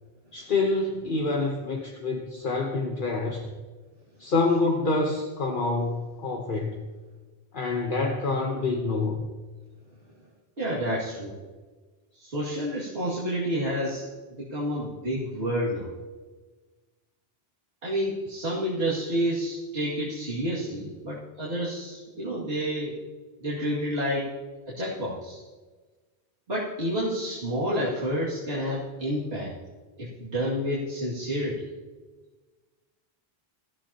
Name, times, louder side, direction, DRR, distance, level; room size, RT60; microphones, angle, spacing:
voice 1, 0.3-3.5 4.2-6.9 7.5-9.2, left 3 dB, 55° left, 1 dB, 1.2 m, -27 dB
voice 2, 10.6-11.3 12.1-14.0 14.3-15.9 17.8-22.9 23.4-24.3 24.7-25.4 26.5-29.5 30.0-31.7, equal, 80° right, -8 dB, 2.6 m, -29 dB
18.0 x 14.0 x 2.9 m, 1.3 s
omnidirectional pair, 1.0 m